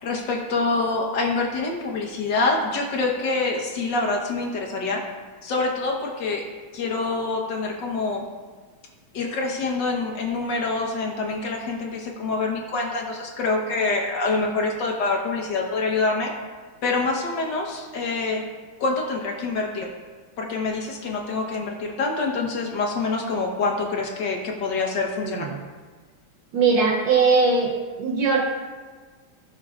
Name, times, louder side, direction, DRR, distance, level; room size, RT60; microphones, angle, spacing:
voice 1, 0.0-5.0 5.4-6.4 6.7-8.3 9.1-16.3 16.8-18.5 18.8-19.9 20.4-25.5, left 3 dB, 65° left, 0 dB, 1.8 m, -26 dB
voice 2, 26.5-27.7 28.0-28.4, right 4 dB, 70° right, -1 dB, 1.5 m, -20 dB
16.5 x 6.3 x 2.5 m, 1.4 s
omnidirectional pair, 2.2 m